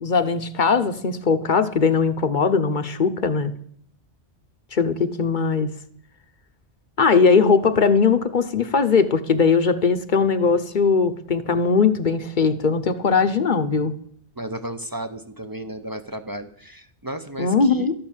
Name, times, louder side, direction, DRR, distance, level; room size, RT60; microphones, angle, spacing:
voice 1, 0.0-3.5 4.7-5.7 7.0-13.9 17.4-17.9, left 5 dB, 45° left, 10 dB, 0.9 m, -20 dB
voice 2, 14.4-17.9, right 1 dB, 25° right, 8 dB, 0.6 m, -34 dB
12.5 x 8.8 x 7.2 m, 0.64 s
omnidirectional pair, 1.2 m